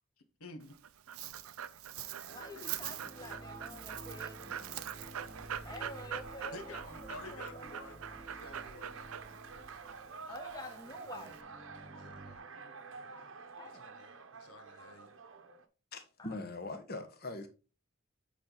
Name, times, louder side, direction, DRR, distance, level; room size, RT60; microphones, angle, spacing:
voice 1, 0.4-0.8 1.9-2.0 2.6-2.8 6.5-9.7 12.0-12.4 13.7-15.1, left 3 dB, 85° left, 1.2 m, -51 dB
Dog, 0.6-11.4, right 9 dB, 80° right, 0.5 m, -44 dB
sound 1, 1.9-15.7, right 4 dB, 60° right, 0.9 m, -50 dB
voice 2, 2.3-4.9 5.6-7.9 10.3-11.4 13.6-13.9 16.2-16.4, left 1 dB, 15° left, 0.9 m, -48 dB
sound 2, 2.3-12.4, right 1 dB, 15° right, 0.9 m, -53 dB
voice 3, 15.9-17.5, left 2 dB, 45° left, 1.2 m, -41 dB
8.7 x 4.3 x 3.9 m
head